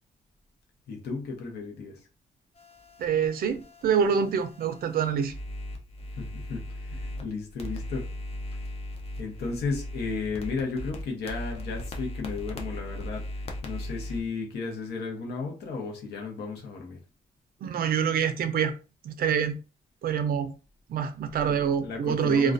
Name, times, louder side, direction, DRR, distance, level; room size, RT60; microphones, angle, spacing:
voice 1, 0.9-2.0 6.1-8.1 9.2-13.2 13.6-17.0 21.4-22.5, left 4 dB, 85° left, 0.8 m, -34 dB
sound 1, 2.6-7.2 7.6-14.2, left 1 dB, 35° left, 0.5 m, -38 dB
voice 2, 3.0-5.3 17.6-18.7 19.0-19.6 20.0-20.5 20.9-22.5, right 7 dB, 65° right, 0.4 m, -26 dB
2.3 x 2.2 x 2.4 m
cardioid pair, 120°, 17 cm